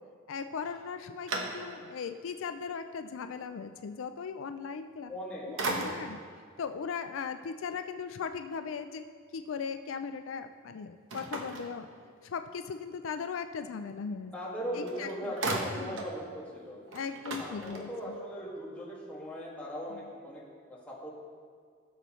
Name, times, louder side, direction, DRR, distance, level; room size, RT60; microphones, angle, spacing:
voice 1, 0.3-5.1 5.4-6.2 6.6-9.0 9.3-11.9 12.2-14.3 14.8-15.3 15.7-16.0 16.9-17.9 19.9-20.0, left 6 dB, 75° left, 9 dB, 0.4 m, -38 dB
sound 1, 0.6-2.1 2.6-2.7 4.9-5.2 5.6-6.3 11.1-12.4 14.5-14.6 14.9-16.2 16.5-16.6 16.9-18.2, right 2 dB, 70° right, 1.1 m, -37 dB
voice 2, 5.1-5.8 14.3-16.8 17.2-21.1, equal, 5° left, -6 dB, 2.0 m, -39 dB
16.0 x 6.9 x 3.1 m, 2.1 s
head